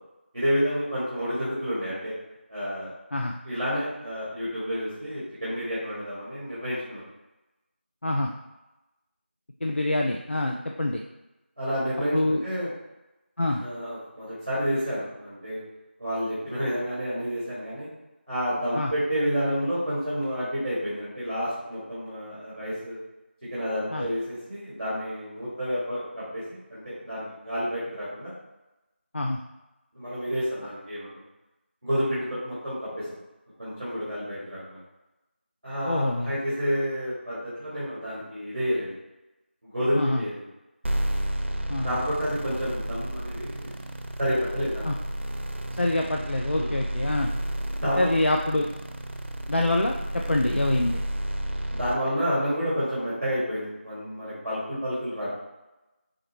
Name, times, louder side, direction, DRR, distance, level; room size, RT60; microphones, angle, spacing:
voice 1, 0.3-2.1 2.5-2.9 3.4-7.0 11.6-12.7 13.6-15.6 16.0-17.9 18.3-23.0 23.5-28.3 29.9-31.2 31.8-33.1 33.6-34.8 35.6-38.9 39.6-40.5 41.8-43.7 44.2-44.9 46.5-46.7 47.7-48.2 51.7-55.3, equal, 5° left, -26 dB, 0.7 m, -29 dB
voice 2, 9.6-11.0 12.1-12.4 13.4-13.6 18.8-18.9 23.9-24.0 29.1-29.4 35.9-36.3 39.9-40.2 41.7-42.0 44.8-44.9 45.8-47.3 48.0-48.7 49.5-49.9 50.3-51.0, left 1 dB, 65° left, 1 dB, 0.3 m, -25 dB
sound 1, 40.8-51.9, right 1 dB, 80° right, 0.5 m, -31 dB
3.8 x 3.2 x 2.9 m, 1.0 s
figure-of-eight pair, 175°, 6 cm